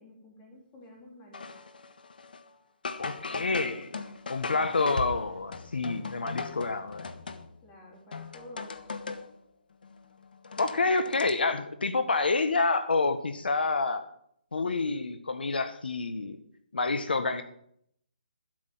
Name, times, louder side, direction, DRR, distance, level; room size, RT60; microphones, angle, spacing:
voice 1, 0.0-1.5 3.3-3.7 7.6-8.9, left 1 dB, 15° left, -1 dB, 3.2 m, -50 dB
sound 1, 1.3-2.5 2.8-7.7 8.1-9.3 9.8-11.3, left 4 dB, 65° left, 1.4 m, -39 dB
voice 2, 3.0-3.9 4.3-7.1 10.6-14.1 14.5-16.4 16.7-17.4, left 3 dB, 85° left, 9 dB, 1.5 m, -28 dB
12.5 x 6.4 x 9.3 m, 0.67 s
hypercardioid pair, 175°, 5 cm